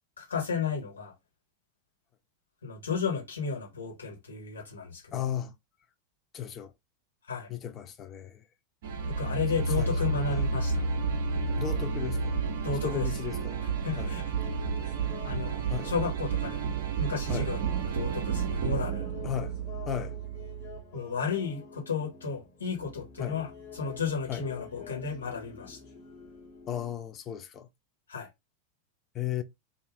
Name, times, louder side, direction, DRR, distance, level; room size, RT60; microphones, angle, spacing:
voice 1, 0.2-1.1 2.6-5.2 7.3-7.5 9.2-10.8 12.6-13.1 13.8-14.2 14.8-14.9 15.2-16.6 17.0-17.6 17.9-19.1 20.9-25.8 28.1-28.3, left 5 dB, 75° left, 1.4 m, -33 dB
voice 2, 5.1-5.5 6.3-6.7 7.5-8.4 9.8-10.4 11.6-12.4 12.8-13.6 14.0-14.1 15.7-15.9 17.3-17.8 19.2-19.6 19.9-20.1 23.2-23.3 24.3-24.4 26.7-27.7 29.1-29.4, left 10 dB, 30° left, 0.5 m, -35 dB
sound 1, 8.8-20.8, right 5 dB, 55° right, 0.5 m, -31 dB
sound 2, 14.3-26.9, left 6 dB, 45° left, 1.3 m, -48 dB
2.5 x 2.5 x 3.3 m
figure-of-eight pair, 90°, 0 cm